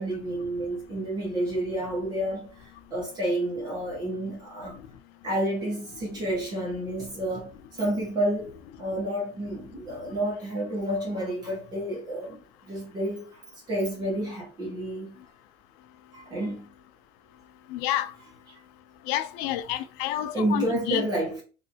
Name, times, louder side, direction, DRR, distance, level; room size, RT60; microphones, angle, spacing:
voice 1, 0.0-4.8 5.2-8.5 8.8-15.2 16.1-16.7 18.2-18.3 19.7-19.8 20.3-21.4, right 1 dB, 25° right, 1.3 m, -30 dB
voice 2, 17.7-18.1 19.1-21.1, left 13 dB, 75° left, 0.4 m, -29 dB
3.2 x 2.8 x 2.7 m
cardioid pair, 180°, 17 cm